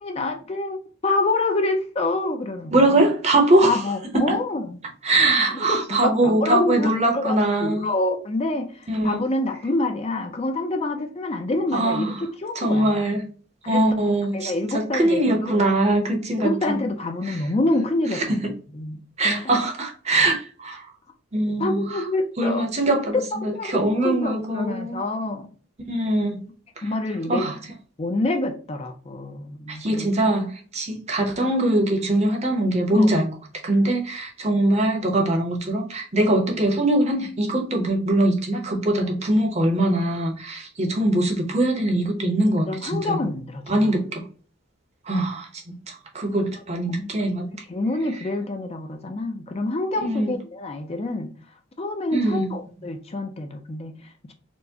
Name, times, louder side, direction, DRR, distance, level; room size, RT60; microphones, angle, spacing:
voice 1, 0.0-3.0 3.6-4.8 5.5-12.1 12.4-13.0 13.6-13.8 14.3-15.6 16.4-18.4 18.7-19.7 21.6-22.7 23.4-23.7 24.0-25.5 26.8-27.5 28.0-30.1 32.9-33.1 39.0-39.2 42.7-44.0 47.0-47.1 47.7-51.3 51.8-54.3, left 2 dB, 30° left, 0.4 m, -27 dB
voice 2, 2.7-3.8 4.1-4.2 5.0-7.9 8.9-9.2 11.7-12.2 12.6-13.2 13.7-16.8 17.3-17.4 18.1-18.4 19.2-20.9 21.3-22.0 22.4-25.0 25.9-26.4 26.8-26.9 27.3-27.6 29.7-33.3 33.6-43.2 43.7-44.3 45.0-47.5 50.0-50.3 52.1-52.5, right 1 dB, 35° right, 0.7 m, -22 dB
4.4 x 2.1 x 2.7 m
head